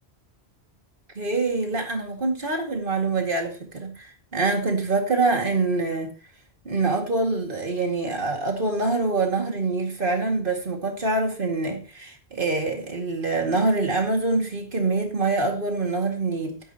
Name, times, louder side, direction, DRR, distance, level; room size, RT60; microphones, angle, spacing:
voice 1, 1.2-6.1 6.6-16.6, right 3 dB, 55° right, 2.4 m, -25 dB
12.5 x 11.0 x 3.0 m
omnidirectional pair, 1.1 m